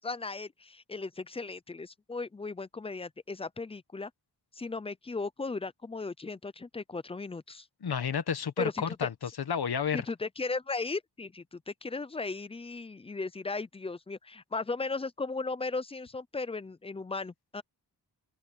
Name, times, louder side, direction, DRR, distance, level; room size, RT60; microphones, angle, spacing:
voice 1, 0.0-4.1 4.5-7.7 8.6-9.1 9.9-17.6, left 3 dB, 15° left, 0.4 m, -36 dB
voice 2, 7.8-9.1 9.5-10.0, left 7 dB, 65° left, 1.4 m, -30 dB
open air
wide cardioid pair, 145°, 40 cm